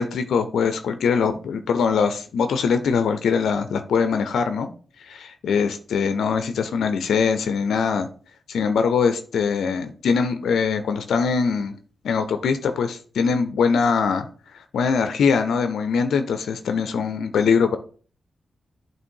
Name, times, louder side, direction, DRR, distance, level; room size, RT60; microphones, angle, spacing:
voice 1, 0.0-4.7 5.0-8.1 8.5-11.8 12.0-14.3 14.5-17.8, left 5 dB, 85° left, 9 dB, 0.5 m, -22 dB
8.4 x 3.1 x 4.5 m, 0.42 s
supercardioid pair, 45°, 0 cm